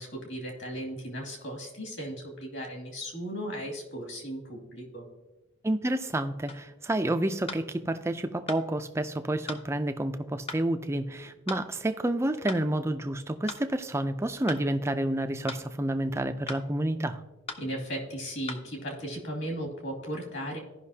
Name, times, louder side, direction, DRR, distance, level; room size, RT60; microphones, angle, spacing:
voice 1, 0.0-5.1 17.6-20.6, equal, 55° left, 1 dB, 2.3 m, -36 dB
voice 2, 5.6-17.2, right 1 dB, 10° right, 8 dB, 0.4 m, -29 dB
sound 1, 6.5-6.7 7.5-7.7 8.5-8.6 9.5-9.7 10.5-10.7 11.5-11.7 12.5-12.7 13.5-13.7 14.5-14.7 15.5-15.7 16.5-16.7 17.5-17.7 18.5-18.7, left 4 dB, 25° left, 0.6 m, -38 dB
15.5 x 5.7 x 2.8 m, 1.1 s
head